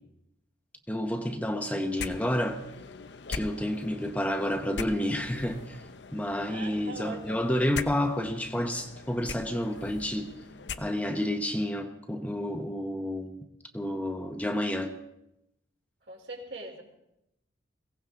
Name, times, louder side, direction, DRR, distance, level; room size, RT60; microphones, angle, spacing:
voice 1, 0.9-2.6 3.3-5.8 6.1-10.3 10.8-13.3 13.7-14.9, left 1 dB, 10° left, 4 dB, 0.9 m, -30 dB
sound 1, 2.0-11.3, left 5 dB, 65° left, 0.7 m, -42 dB
voice 2, 3.6-4.1 6.5-7.4 16.1-16.8, right 3 dB, 65° right, 1 dB, 3.6 m, -42 dB
22.0 x 17.0 x 3.7 m, 0.86 s
head